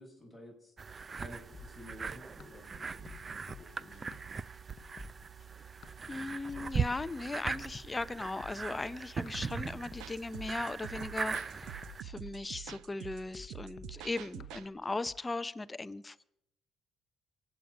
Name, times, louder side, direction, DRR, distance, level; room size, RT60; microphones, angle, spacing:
voice 1, 0.0-4.2 8.5-8.7, left 1 dB, ahead, -1 dB, 5.4 m, -52 dB
sound 1, 0.8-12.0, right 5 dB, 30° right, 0.5 m, -40 dB
sound 2, 1.5-15.2, left 7 dB, 45° left, 0.8 m, -54 dB
voice 2, 6.1-11.7 12.0-16.2, left 2 dB, 15° left, 15 dB, 0.6 m, -38 dB
sound 3, 9.3-14.7, right 11 dB, 85° right, 0.8 m, -47 dB
24.0 x 8.7 x 6.1 m, 0.81 s
cardioid pair, 110°, 0 cm